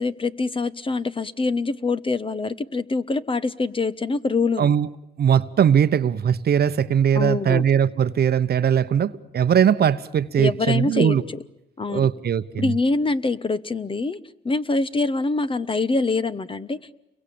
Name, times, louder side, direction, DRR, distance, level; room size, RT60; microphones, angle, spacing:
voice 1, 0.0-4.7 7.1-7.6 10.4-11.4 11.8-12.1 12.6-14.2 14.4-16.9, left 3 dB, 25° left, 1.1 m, -24 dB
voice 2, 5.2-11.2 11.9-12.7, right 8 dB, 50° right, 1.0 m, -20 dB
29.5 x 23.0 x 8.7 m
cardioid pair, 90°, 20 cm